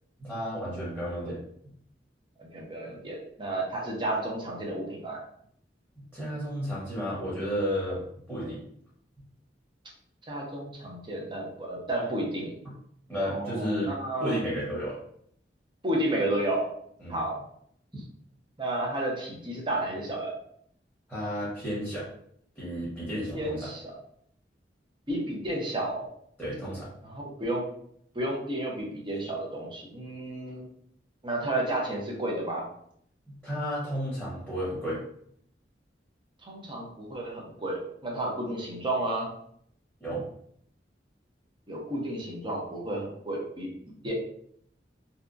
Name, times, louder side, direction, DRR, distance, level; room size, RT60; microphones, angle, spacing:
voice 1, 0.2-1.4 6.1-8.0 8.3-8.6 13.1-13.9 14.2-15.0 17.0-17.2 17.9-18.0 21.1-22.1 22.6-23.7 26.4-26.9 33.3-35.0 40.0-40.2, equal, 5° right, -9 dB, 1.0 m, -32 dB
voice 2, 2.4-5.2 10.3-12.5 13.2-14.4 15.8-16.7 17.1-17.4 18.6-20.3 23.3-23.9 25.1-26.1 27.0-27.7 28.1-30.7 31.2-32.6 36.4-39.3 41.7-43.7 44.0-44.1, right 1 dB, 25° right, -2 dB, 0.7 m, -32 dB
2.8 x 2.2 x 2.5 m, 0.67 s
head